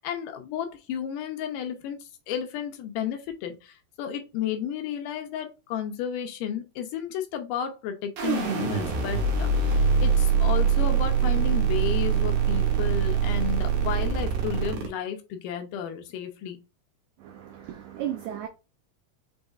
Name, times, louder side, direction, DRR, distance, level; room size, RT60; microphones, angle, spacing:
voice 1, 0.0-16.6, left 9 dB, 75° left, 2.2 m, -33 dB
sound 1, 8.2-14.9, right 6 dB, 75° right, 2.8 m, -23 dB
voice 2, 17.2-18.5, right 11 dB, 90° right, 1.7 m, -35 dB
6.2 x 3.5 x 2.4 m
omnidirectional pair, 4.1 m